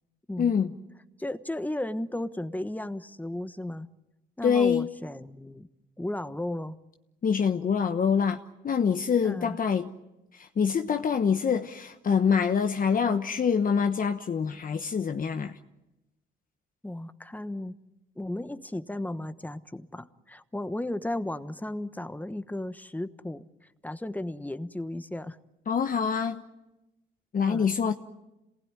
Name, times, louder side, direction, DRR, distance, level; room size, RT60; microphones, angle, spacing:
voice 1, 0.4-0.7 4.4-4.9 7.2-9.9 10.3-15.6 25.7-26.4 27.3-27.9, left 6 dB, 45° left, 1.1 m, -25 dB
voice 2, 1.2-3.9 4.4-5.7 6.0-6.8 9.2-9.6 16.8-17.7 18.2-23.5 23.8-25.4 27.4-27.8, left 1 dB, 10° left, 1.2 m, -35 dB
27.5 x 19.5 x 9.8 m
cardioid pair, 90°, 20 cm